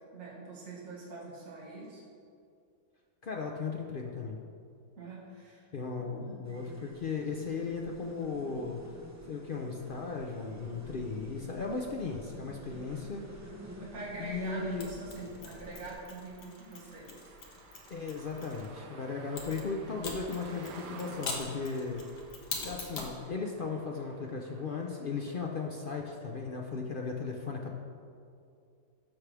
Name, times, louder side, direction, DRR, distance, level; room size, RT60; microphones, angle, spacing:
voice 1, 0.1-2.0 5.0-5.7 6.0-6.4 13.8-17.3, right 2 dB, 50° right, -7 dB, 2.2 m, -44 dB
voice 2, 3.2-4.4 5.7-8.8 9.3-13.2 14.2-14.9 17.9-22.1 22.6-27.7, left 4 dB, 65° left, 0 dB, 0.5 m, -36 dB
sound 1, 6.4-15.9, right 1 dB, 15° right, 0.7 m, -50 dB
sound 2, 12.8-25.8, right 4 dB, 80° right, 1.4 m, -53 dB
Mechanisms, 14.8-18.7 19.4-23.2, left 3 dB, 80° left, 1.8 m, -43 dB
14.5 x 5.9 x 3.4 m, 2.4 s
omnidirectional pair, 1.7 m